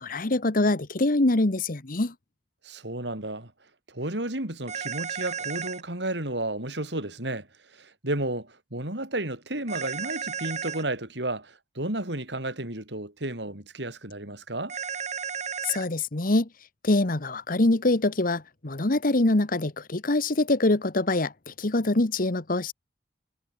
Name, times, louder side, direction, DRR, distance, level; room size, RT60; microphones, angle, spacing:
voice 1, 0.0-2.1 15.6-16.5 16.8-22.7, left 2 dB, 55° left, 1.3 m, -24 dB
voice 2, 2.6-3.5 3.9-7.5 7.7-14.8, right 1 dB, 80° right, 6.0 m, -32 dB
sound 1, 4.7-5.8 9.7-10.8 14.7-15.8, right 7 dB, 40° right, 2.7 m, -33 dB
head